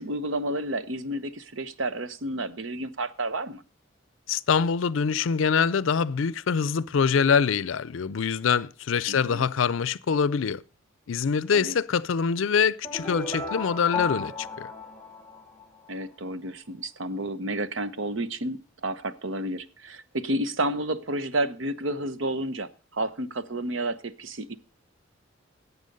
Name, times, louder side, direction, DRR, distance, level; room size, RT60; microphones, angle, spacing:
voice 1, 0.0-3.6 9.1-9.5 11.5-11.8 15.9-24.5, right 1 dB, 70° right, 0.8 m, -31 dB
voice 2, 4.3-10.6 11.1-14.7, left 6 dB, 75° left, 0.5 m, -24 dB
sound 1, 12.8-15.9, left 3 dB, 10° left, 1.3 m, -34 dB
12.0 x 8.2 x 5.2 m
head